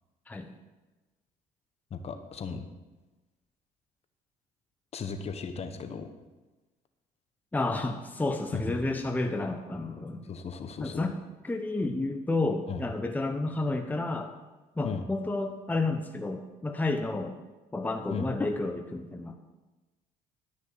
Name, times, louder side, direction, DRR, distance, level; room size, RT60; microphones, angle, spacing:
voice 1, 1.9-2.6 4.9-6.1 8.5-8.9 10.3-11.0 12.7-12.8 14.8-15.0 18.1-18.3, left 5 dB, 45° left, 8 dB, 1.1 m, -36 dB
voice 2, 7.5-10.3 10.8-11.1 11.4-14.3 14.8-17.4 17.7-19.4, left 2 dB, 10° left, 5 dB, 0.8 m, -31 dB
12.0 x 6.3 x 5.7 m, 1.2 s
supercardioid pair, 90°, 15 cm